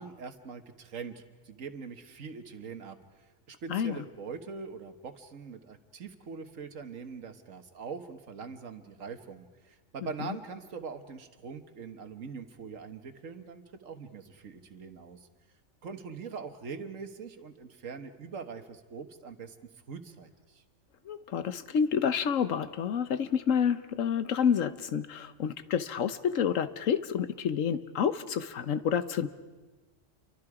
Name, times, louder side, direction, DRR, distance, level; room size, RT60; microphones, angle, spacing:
voice 1, 0.0-15.3 15.8-19.6 19.9-20.6, right 5 dB, 85° right, 8 dB, 1.7 m, -43 dB
voice 2, 3.7-4.0 21.1-29.3, left 7 dB, 85° left, 13 dB, 1.3 m, -29 dB
28.5 x 24.0 x 4.9 m, 1.3 s
omnidirectional pair, 1.3 m